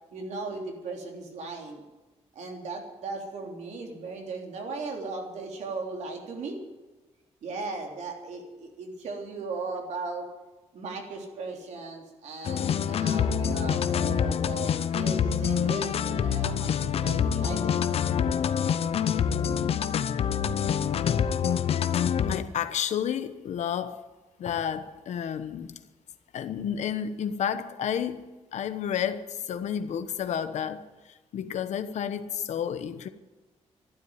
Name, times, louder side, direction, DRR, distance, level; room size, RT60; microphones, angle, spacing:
voice 1, 0.1-1.8 2.3-6.6 7.4-10.3 10.7-17.8, right 3 dB, 80° right, 3.5 m, -37 dB
sound 1, 12.4-22.4, left 8 dB, 60° left, 0.7 m, -26 dB
voice 2, 22.3-24.1 24.4-25.8 26.3-33.1, left 8 dB, 80° left, 1.1 m, -31 dB
12.5 x 12.0 x 9.5 m
wide cardioid pair, 175°, 12 cm